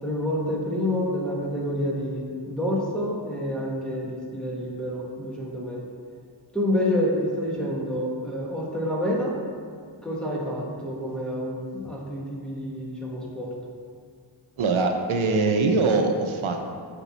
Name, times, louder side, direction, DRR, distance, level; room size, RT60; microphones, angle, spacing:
voice 1, 0.0-5.8 6.5-9.3 10.0-13.5, left 1 dB, ahead, -4 dB, 1.6 m, -28 dB
voice 2, 14.6-16.6, right 3 dB, 85° right, 4 dB, 0.7 m, -22 dB
8.0 x 4.6 x 4.2 m, 2.2 s
wide cardioid pair, 70°, 47 cm